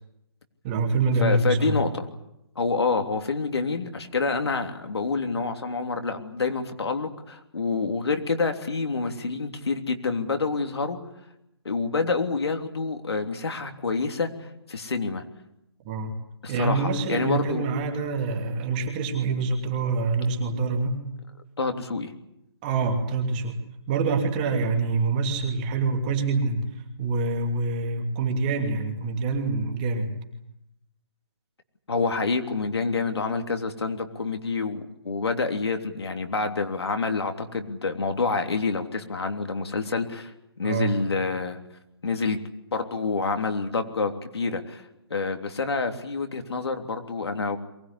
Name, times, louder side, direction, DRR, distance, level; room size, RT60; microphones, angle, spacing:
voice 1, 0.6-1.8 15.8-16.1 16.5-21.0 22.6-23.6 23.9-26.6 27.0-30.1 40.6-40.9, right 3 dB, 20° right, 3 dB, 2.8 m, -26 dB
voice 2, 1.2-2.1 2.5-11.0 11.6-15.2 16.4-17.7 21.6-22.1 31.9-40.3 40.6-41.6 42.0-42.4 42.7-44.8 45.1-47.6, left 4 dB, 75° left, 5 dB, 3.3 m, -27 dB
23.0 x 19.0 x 10.0 m, 0.84 s
hypercardioid pair, 170°, 14 cm